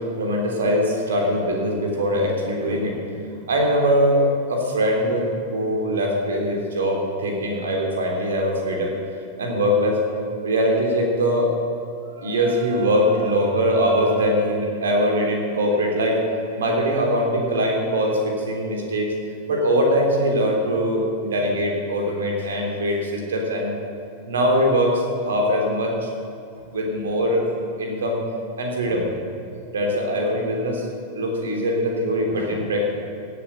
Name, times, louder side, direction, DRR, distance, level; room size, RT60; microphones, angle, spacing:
voice 1, 0.0-3.0 3.5-8.9 9.4-10.0 10.4-11.5 12.1-19.1 19.5-23.8 24.3-25.9 26.7-27.4 27.8-28.2 28.6-29.1 29.7-30.8 31.1-32.9, equal, 65° right, 1 dB, 3.2 m, -22 dB
16.5 x 8.5 x 8.0 m, 2.5 s
figure-of-eight pair, 90°, 0 cm